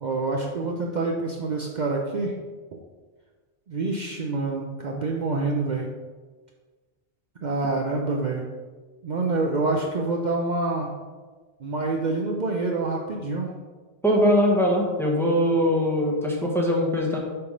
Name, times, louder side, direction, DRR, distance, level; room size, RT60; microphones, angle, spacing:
voice 1, 0.0-2.4 3.7-5.9 7.4-8.4 9.0-10.9 11.6-13.5 15.6-15.7, right 3 dB, 50° right, 0 dB, 0.7 m, -27 dB
voice 2, 14.0-17.2, equal, ahead, -2 dB, 1.0 m, -21 dB
6.9 x 3.4 x 5.0 m, 1.3 s
omnidirectional pair, 1.1 m